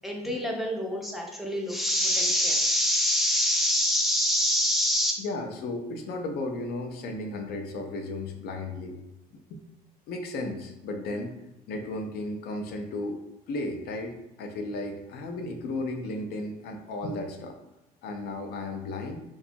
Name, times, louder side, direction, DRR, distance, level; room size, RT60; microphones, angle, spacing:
voice 1, 0.0-5.1, equal, ahead, -1 dB, 0.4 m, -25 dB
voice 2, 5.2-9.0 9.5-9.6 10.1-11.3 11.7-13.2 13.5-17.6 18.0-19.2, left 2 dB, 70° left, 4 dB, 0.5 m, -34 dB
2.8 x 2.3 x 2.5 m, 0.94 s
cardioid pair, 110°, 17 cm